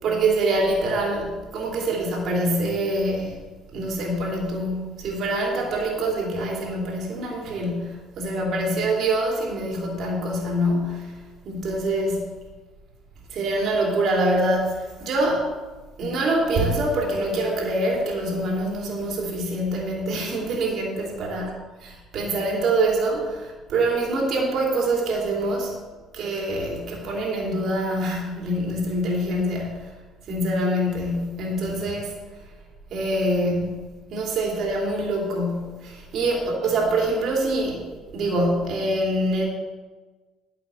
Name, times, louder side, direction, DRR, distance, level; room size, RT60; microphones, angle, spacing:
voice 1, 0.0-3.4 3.7-12.3 13.3-15.5 16.0-21.5 21.8-25.7 26.1-29.9 30.3-32.1 32.9-39.4, right 1 dB, 60° right, -1 dB, 3.1 m, -25 dB
10.0 x 6.1 x 8.3 m, 1.3 s
hypercardioid pair, 55°, 0 cm